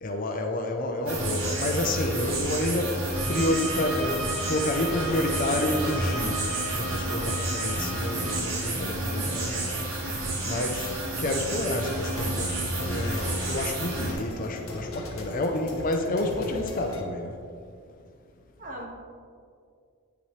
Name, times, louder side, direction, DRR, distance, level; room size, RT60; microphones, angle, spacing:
voice 1, 0.0-3.0 3.3-6.4 6.8-9.8 10.5-17.4, left 1 dB, 40° left, 5 dB, 0.5 m, -29 dB
sound 1, 1.1-14.1, right 2 dB, 65° right, 1.8 m, -30 dB
sound 2, 1.6-17.0, left 2 dB, 75° left, 1.0 m, -42 dB
sound 3, 3.1-8.4, right 2 dB, ahead, 0.7 m, -36 dB
voice 2, 10.4-10.9 18.6-18.9, right 1 dB, 35° right, 0 dB, 1.1 m, -41 dB
8.7 x 6.8 x 3.2 m, 2.3 s
head